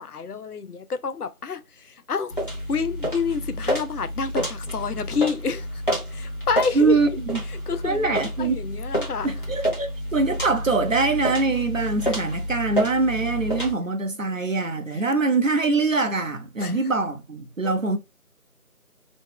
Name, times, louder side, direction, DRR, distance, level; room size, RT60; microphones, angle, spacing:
voice 1, 0.0-2.3 2.7-5.8 6.1-7.0 7.5-9.3 14.9-15.0 16.6-16.8 17.6-17.7, left 5 dB, 85° left, 0.6 m, -29 dB
sound 1, 2.3-13.7, equal, 35° left, 1.1 m, -29 dB
voice 2, 6.7-7.4 7.8-8.6 9.2-18.0, right 3 dB, 60° right, 0.8 m, -23 dB
3.0 x 2.0 x 3.5 m
figure-of-eight pair, 170°, 44 cm